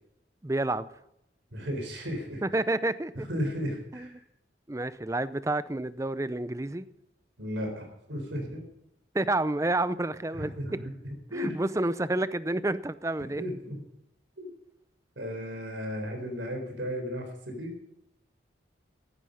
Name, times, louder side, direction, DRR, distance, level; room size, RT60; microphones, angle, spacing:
voice 1, 0.4-0.9 2.4-3.3 3.9-4.1 4.7-6.9 9.1-10.8 11.3-13.4, right 2 dB, 15° right, 15 dB, 0.5 m, -29 dB
voice 2, 1.5-2.4 3.3-4.1 7.4-8.6 10.3-10.8 11.3-11.6 13.4-13.8 14.4-14.5 15.2-17.7, equal, 75° right, 3 dB, 4.2 m, -34 dB
15.0 x 11.5 x 5.6 m, 0.79 s
head